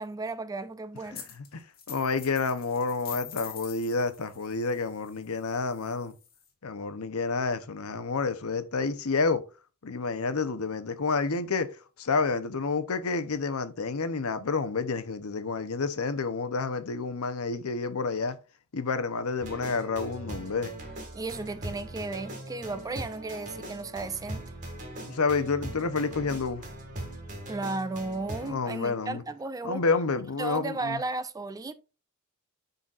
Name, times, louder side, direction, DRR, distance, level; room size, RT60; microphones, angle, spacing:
voice 1, 0.0-1.3 21.1-24.4 27.5-29.8 30.4-31.7, right 3 dB, 15° right, 0.4 m, -34 dB
voice 2, 1.1-6.2 6.6-9.4 9.8-11.7 12.0-18.4 18.7-20.7 25.0-26.6 28.4-29.2 29.6-31.0, left 4 dB, 75° left, 0.7 m, -29 dB
sound 1, 1.1-1.5 1.7-6.5, left 8 dB, 45° left, 1.5 m, -45 dB
sound 2, 19.4-28.5, right 1 dB, 35° right, 2.0 m, -40 dB
9.9 x 4.0 x 2.4 m
head